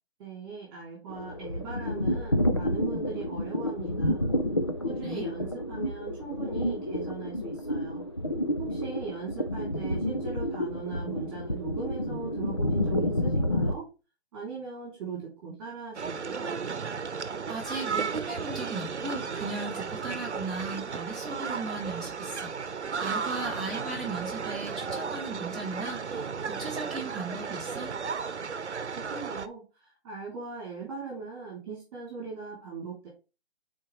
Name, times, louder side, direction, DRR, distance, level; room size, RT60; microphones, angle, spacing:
voice 1, 0.2-4.3 4.8-8.0 8.6-13.8 14.3-16.6 28.4-28.6 28.9-33.1, right 5 dB, 20° right, -4 dB, 2.9 m, -39 dB
sound 1, 1.1-13.7, left 1 dB, 25° left, 0.4 m, -30 dB
sound 2, 15.9-29.5, right 5 dB, 85° right, 0.9 m, -34 dB
voice 2, 17.5-27.9, right 2 dB, ahead, -6 dB, 1.2 m, -37 dB
8.8 x 4.3 x 3.2 m, 0.29 s
figure-of-eight pair, 155°, 33 cm